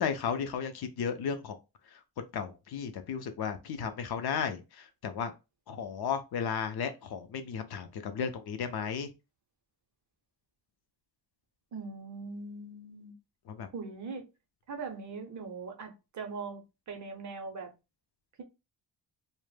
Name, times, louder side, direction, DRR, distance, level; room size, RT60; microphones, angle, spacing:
voice 1, 0.0-1.6 1.9-5.3 5.7-9.1 13.5-13.7, left 7 dB, 60° left, 0.5 m, -34 dB
voice 2, 11.7-13.2 13.7-14.3 14.7-17.7, right 4 dB, 40° right, 0.5 m, -41 dB
2.1 x 2.1 x 3.1 m
wide cardioid pair, 155°, 45 cm